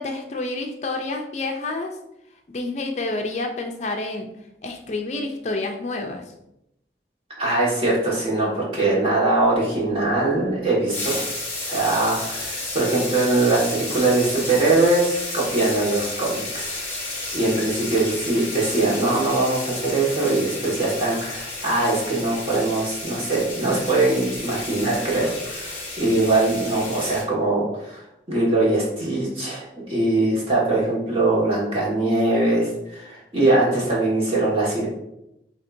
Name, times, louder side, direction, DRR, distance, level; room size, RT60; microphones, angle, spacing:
voice 1, 0.0-2.0 2.5-4.3 4.6-6.2, left 2 dB, 40° left, 3 dB, 0.5 m, -28 dB
voice 2, 7.4-11.2 11.6-16.8 17.3-34.9, right 2 dB, 35° right, -5 dB, 1.6 m, -22 dB
sound 1, 10.9-27.2, left 2 dB, 15° left, 1.7 m, -32 dB
7.2 x 2.8 x 2.6 m, 0.84 s
head